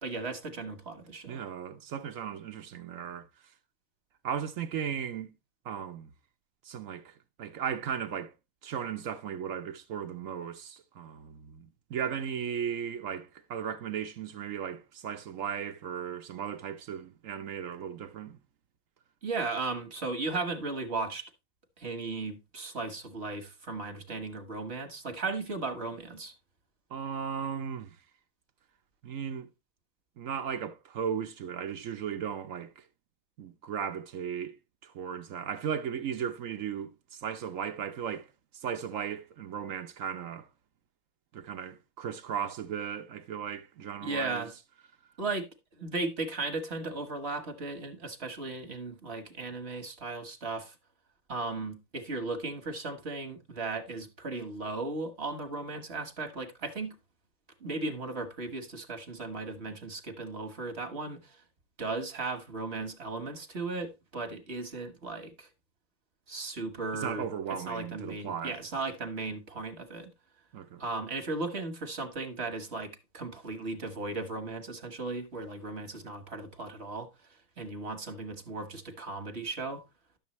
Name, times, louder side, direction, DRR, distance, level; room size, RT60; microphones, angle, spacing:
voice 1, 0.0-1.4 19.2-21.3 21.8-26.3 44.0-44.5 45.2-45.5 45.8-50.7 51.3-56.9 57.6-61.4 61.8-65.5 66.3-67.2 67.5-70.1 70.8-77.1 77.6-79.8, right 3 dB, 35° right, 1.2 m, -36 dB
voice 2, 1.3-3.5 4.2-5.3 5.6-6.1 6.6-8.3 8.6-18.4 26.9-28.0 29.0-29.5 30.2-32.9 33.4-34.6 34.8-40.5 41.3-44.5 66.9-68.6 70.5-70.8, right 8 dB, 80° right, 0.7 m, -36 dB
11.5 x 7.0 x 3.0 m
omnidirectional pair, 2.3 m